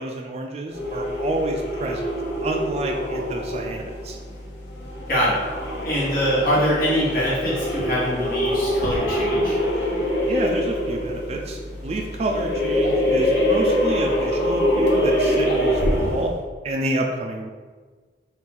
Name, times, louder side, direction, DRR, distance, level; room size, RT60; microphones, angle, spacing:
voice 1, 0.0-2.1 2.4-4.2 10.3-16.3 16.6-17.5, right 2 dB, 35° right, 1 dB, 0.3 m, -29 dB
sound 1, 0.7-16.4, equal, 75° left, 1.0 m, -24 dB
voice 2, 5.1-5.4 5.8-9.6, equal, 55° left, -8 dB, 1.3 m, -23 dB
4.1 x 2.5 x 3.8 m, 1.4 s
head